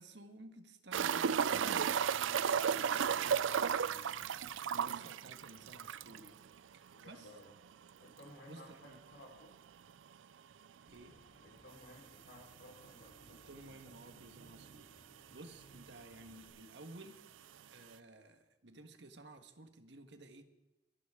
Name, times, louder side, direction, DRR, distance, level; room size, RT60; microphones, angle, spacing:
voice 1, 0.0-6.4 6.7-7.3 8.4-9.0 10.9-11.2 13.3-14.9 15.3-20.4, right 2 dB, 70° right, 7 dB, 1.5 m, -55 dB
sound 1, 0.9-6.3 6.6-6.7 7.0-7.1 9.9-10.0 11.7-11.8 12.6-12.7 12.9-13.0 13.9-14.0 14.1-14.8 15.7-15.8, right 7 dB, 90° right, 0.4 m, -33 dB
voice 2, 6.9-7.5 8.0-9.5 11.4-13.8, left 1 dB, 70° left, 1 dB, 4.2 m, -57 dB
Boat Water vehicle / Engine, 10.9-16.5, equal, 50° left, 5.0 m, -65 dB
24.0 x 11.5 x 3.7 m, 1.0 s
head